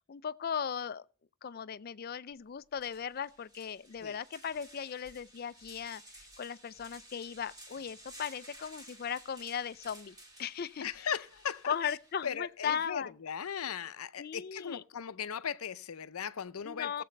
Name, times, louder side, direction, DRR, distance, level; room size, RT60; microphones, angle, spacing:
voice 1, 0.1-1.0 1.4-6.0 6.4-11.1 11.7-13.1 14.2-14.8 16.6-17.0, left 7 dB, 45° left, 0.4 m, -37 dB
sound 1, 2.3-2.4 2.8-12.3, right 1 dB, 20° right, 2.6 m, -55 dB
voice 2, 10.8-12.0 12.2-17.0, left 7 dB, 85° left, 0.6 m, -38 dB
18.5 x 7.6 x 3.2 m
head